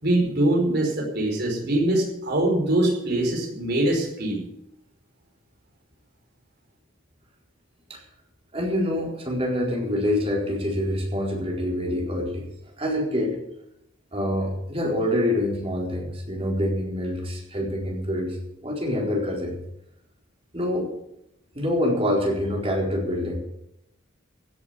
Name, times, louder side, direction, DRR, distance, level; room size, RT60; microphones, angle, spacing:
voice 1, 0.0-4.4, right 1 dB, 50° right, -1 dB, 5.1 m, -23 dB
voice 2, 8.5-12.4 12.8-13.4 14.1-18.4 18.6-19.6 20.5-20.9 21.5-23.4, left 1 dB, 30° right, -2 dB, 4.3 m, -26 dB
16.5 x 8.3 x 8.2 m, 0.81 s
head